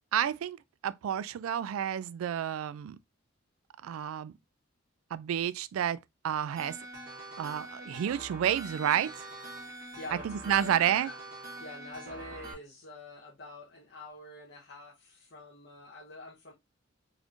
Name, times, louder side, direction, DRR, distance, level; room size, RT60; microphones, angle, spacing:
voice 1, 0.1-0.6 0.8-3.0 3.8-4.3 5.1-6.0 6.2-6.8 7.4-9.3 10.2-11.1, right 10 dB, 90° right, 0.3 m, -30 dB
sound 1, 6.6-12.5, right 2 dB, 45° right, 1.7 m, -44 dB
voice 2, 10.0-11.2 11.6-16.5, left 2 dB, 55° left, 0.9 m, -46 dB
4.0 x 3.0 x 2.4 m
head